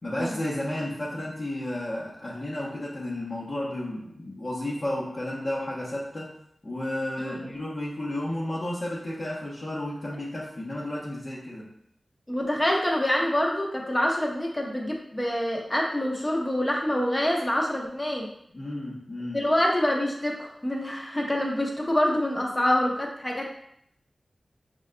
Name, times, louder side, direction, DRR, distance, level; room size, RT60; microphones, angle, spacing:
voice 1, 0.0-6.3 6.6-11.7 18.5-19.4, left 1 dB, 45° left, -8 dB, 1.0 m, -32 dB
voice 2, 12.3-18.3 19.3-23.6, left 1 dB, 20° left, -1 dB, 0.9 m, -26 dB
6.1 x 3.7 x 2.2 m, 0.72 s
wide cardioid pair, 95°, 0 cm